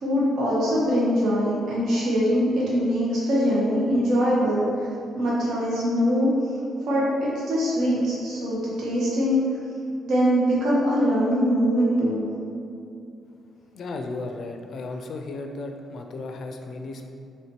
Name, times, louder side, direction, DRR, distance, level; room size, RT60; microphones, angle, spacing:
voice 1, 0.0-4.9 5.1-6.3 6.9-9.4 10.0-12.2, equal, 70° right, -7 dB, 0.8 m, -22 dB
voice 2, 13.7-17.1, left 3 dB, 60° left, 4 dB, 0.4 m, -34 dB
3.0 x 2.9 x 4.4 m, 2.5 s
cardioid pair, 90°, 0 cm